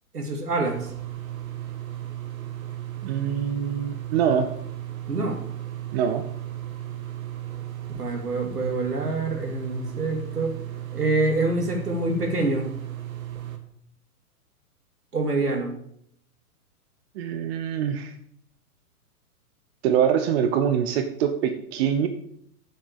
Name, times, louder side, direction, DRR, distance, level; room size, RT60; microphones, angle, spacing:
voice 1, 0.1-0.8 5.1-5.4 8.0-10.6 10.9-12.7 15.1-15.7, right 2 dB, 85° right, 4 dB, 2.6 m, -26 dB
sound 1, 0.6-13.6, right 13 dB, 60° right, 1.7 m, -35 dB
voice 2, 3.0-4.5 5.9-6.3 17.2-18.1 19.8-22.1, right 8 dB, 45° right, 8 dB, 1.1 m, -24 dB
7.8 x 7.5 x 7.3 m, 0.68 s
figure-of-eight pair, 115°, 45 cm